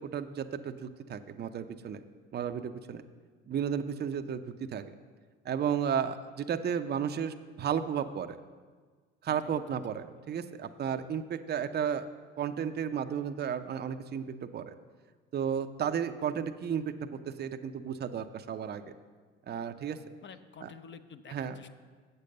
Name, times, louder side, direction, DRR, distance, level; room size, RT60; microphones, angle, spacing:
voice 1, 0.0-2.0 2.3-3.0 3.5-4.9 5.4-8.4 9.2-12.1 12.4-14.7 15.3-16.8 17.1-18.9 19.5-20.0 20.6-20.7 21.3-21.6, right 8 dB, 35° right, 8 dB, 0.6 m, -33 dB
voice 2, 9.3-9.6 20.2-21.7, left 6 dB, 35° left, 11 dB, 0.7 m, -50 dB
8.2 x 6.7 x 6.6 m, 1.5 s
hypercardioid pair, 60°, 31 cm